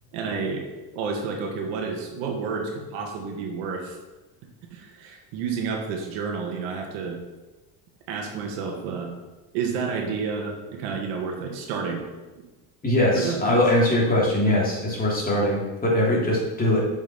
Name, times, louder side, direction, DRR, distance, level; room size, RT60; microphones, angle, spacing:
voice 1, 0.1-0.6 0.9-4.0 4.7-7.2 8.1-9.1 9.5-12.1 12.4-12.5 13.2-13.6, right 5 dB, 75° right, 1 dB, 2.1 m, -30 dB
voice 2, 12.8-16.8, left 1 dB, 20° left, -4 dB, 3.4 m, -21 dB
7.6 x 6.1 x 5.9 m, 1.2 s
supercardioid pair, 105°, 44 cm